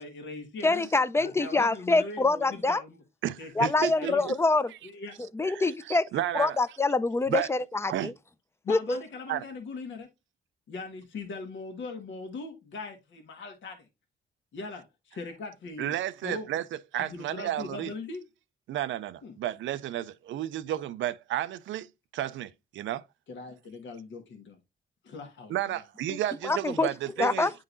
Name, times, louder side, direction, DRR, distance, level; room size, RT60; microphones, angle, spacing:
voice 1, 0.0-0.8 1.2-3.0 3.4-4.2 4.8-5.1 8.6-10.1 10.7-13.9 14.5-15.9 16.2-16.5 17.0-18.2 19.2-19.4 23.3-24.6 25.0-25.8, left 3 dB, 80° left, 1.4 m, -40 dB
voice 2, 0.6-2.8 3.6-4.7 5.3-6.1 6.3-8.1 8.7-9.0 26.1-26.2 26.4-26.9 27.2-27.5, left 3 dB, 15° left, 0.4 m, -25 dB
voice 3, 3.2-4.4 5.5-6.6 7.3-7.5 7.9-8.1 9.3-9.4 15.8-16.6 16.9-17.9 18.7-21.9 22.1-23.0 25.5-27.5, right 12 dB, 90° right, 0.4 m, -32 dB
9.7 x 3.8 x 2.6 m
cardioid pair, 100°, 19 cm